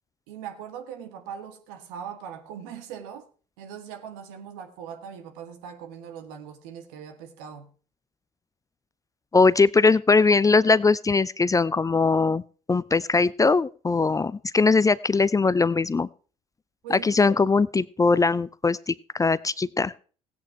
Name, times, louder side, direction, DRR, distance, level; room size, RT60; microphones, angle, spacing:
voice 1, 0.3-3.3 3.6-7.7 16.8-17.2, right 8 dB, 75° right, 1.8 m, -40 dB
voice 2, 9.3-12.4 12.7-16.1 16.9-19.9, left 4 dB, 20° left, 0.5 m, -21 dB
16.5 x 8.7 x 4.6 m
hypercardioid pair, 60°, 18 cm